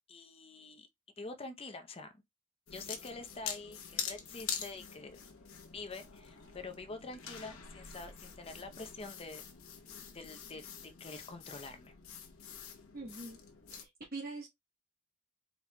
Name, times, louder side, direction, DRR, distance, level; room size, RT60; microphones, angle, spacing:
voice 1, 0.1-0.9 1.2-2.1 2.7-5.2 5.7-9.4 10.1-10.7 11.0-11.9, left 3 dB, 25° left, 0.6 m, -46 dB
sound 1, 2.7-13.8, left 7 dB, 65° left, 1.0 m, -45 dB
voice 2, 12.9-13.4 13.7-14.5, right 3 dB, 40° right, 0.9 m, -43 dB
4.4 x 4.1 x 2.2 m
head